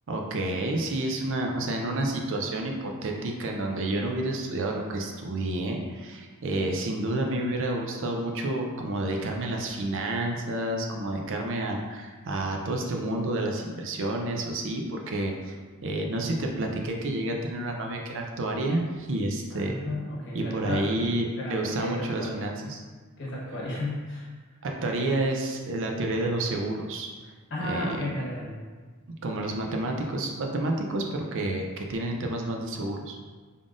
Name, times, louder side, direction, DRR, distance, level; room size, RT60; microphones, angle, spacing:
voice 1, 0.1-15.6 15.8-19.7 20.3-22.8 24.6-27.1 27.6-28.1 29.2-33.2, right 1 dB, 60° right, 1 dB, 0.5 m, -29 dB
voice 2, 19.5-20.9 21.4-22.5 23.2-24.3 24.9-25.0 27.5-28.6 29.6-29.8, left 1 dB, 55° left, -5 dB, 1.1 m, -34 dB
3.6 x 3.6 x 2.5 m, 1.4 s
head